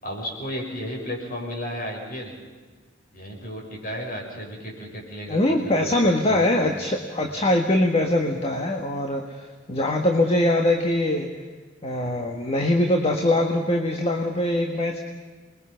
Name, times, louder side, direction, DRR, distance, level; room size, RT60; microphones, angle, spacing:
voice 1, 0.0-2.3 3.1-6.7 7.2-7.3, equal, 50° left, 0 dB, 6.7 m, -34 dB
voice 2, 5.3-11.3 11.8-15.0, left 1 dB, 30° left, 3 dB, 1.7 m, -22 dB
28.0 x 21.5 x 5.8 m, 1.4 s
head